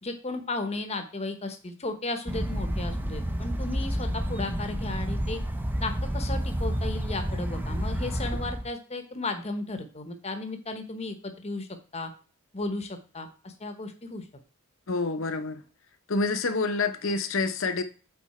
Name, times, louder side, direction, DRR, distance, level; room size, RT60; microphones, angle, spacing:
voice 1, 0.0-5.4 5.8-12.1 12.5-14.2, left 2 dB, 30° left, 7 dB, 0.9 m, -34 dB
sound 1, 2.3-8.7, equal, 10° right, 0.6 m, -30 dB
voice 2, 14.9-15.6 16.1-17.8, left 3 dB, 60° left, 9 dB, 0.8 m, -27 dB
8.6 x 4.1 x 4.2 m, 0.38 s
head